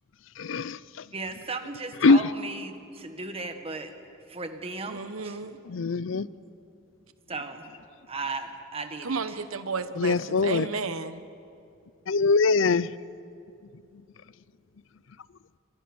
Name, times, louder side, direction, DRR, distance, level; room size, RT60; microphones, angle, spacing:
voice 1, 0.4-0.8 2.0-2.2 5.7-6.3 10.0-10.7 12.1-12.9, left 4 dB, 65° left, 18 dB, 0.5 m, -22 dB
voice 2, 1.1-3.9 4.3-5.4 7.3-7.7 8.1-9.4, right 3 dB, 30° right, 6 dB, 1.7 m, -36 dB
voice 3, 4.9-5.6 9.0-11.2, right 4 dB, 90° right, 11 dB, 1.2 m, -32 dB
29.0 x 23.5 x 6.3 m, 2.6 s
head